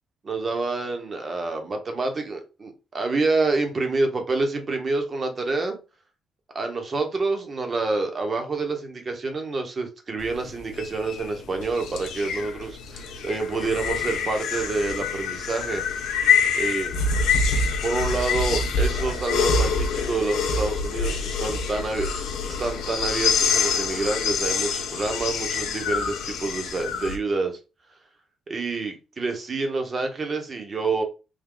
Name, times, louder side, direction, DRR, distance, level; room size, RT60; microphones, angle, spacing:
voice 1, 0.2-5.8 6.5-15.8 16.6-16.9 17.8-27.6 28.5-31.0, right 3 dB, 40° right, 1.1 m, -27 dB
sound 1, 10.2-27.2, left 5 dB, 85° left, 0.7 m, -26 dB
3.6 x 2.3 x 3.7 m
cardioid pair, 90°, 0 cm